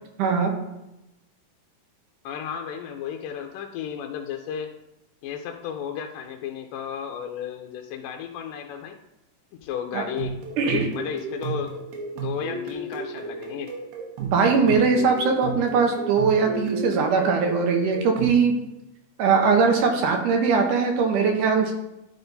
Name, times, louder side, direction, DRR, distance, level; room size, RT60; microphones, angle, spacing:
voice 1, 0.2-0.5 9.9-10.1 10.6-10.9 14.2-18.5 19.2-21.7, right 5 dB, 75° right, 3 dB, 2.1 m, -21 dB
voice 2, 2.2-4.7 5.2-9.0 9.6-11.7 12.2-13.7, left 8 dB, 80° left, 3 dB, 2.1 m, -33 dB
sound 1, 9.9-18.4, right 4 dB, 90° right, 3.0 m, -34 dB
11.5 x 4.0 x 4.0 m, 0.90 s
omnidirectional pair, 4.1 m